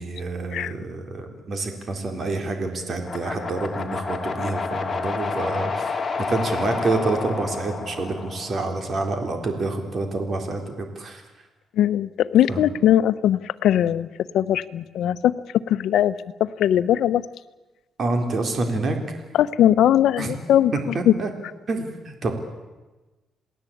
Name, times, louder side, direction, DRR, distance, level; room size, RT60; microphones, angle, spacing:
voice 1, 0.0-5.9 6.2-11.2 12.5-12.7 18.0-19.0 20.2-20.4 20.9-21.3 21.7-22.3, right 3 dB, 40° right, 5 dB, 3.8 m, -27 dB
sound 1, 3.0-9.2, left 4 dB, 25° left, 3.1 m, -30 dB
voice 2, 11.8-14.1 14.3-15.4 15.7-17.2 19.3-21.2, left 11 dB, 80° left, 13 dB, 0.9 m, -20 dB
28.0 x 19.0 x 8.7 m, 1.2 s
cardioid pair, 125°, 0 cm